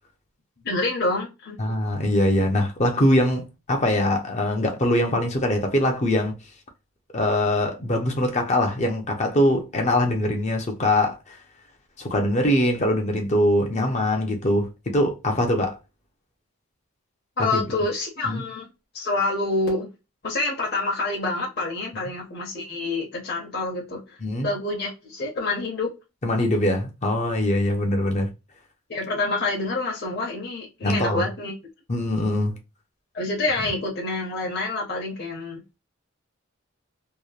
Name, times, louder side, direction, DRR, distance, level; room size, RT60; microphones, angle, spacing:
voice 1, 0.6-1.6 17.4-18.7 18.9-19.9 20.2-24.2 24.4-25.9 28.9-31.5 33.1-35.6, left 2 dB, 45° left, 0.9 m, -27 dB
voice 2, 1.6-6.4 7.1-11.4 12.0-15.7 17.5-17.6 18.3-18.4 24.2-24.5 26.2-28.3 30.8-31.2 31.9-32.5, left 1 dB, 30° left, 0.6 m, -22 dB
2.9 x 2.1 x 2.3 m
head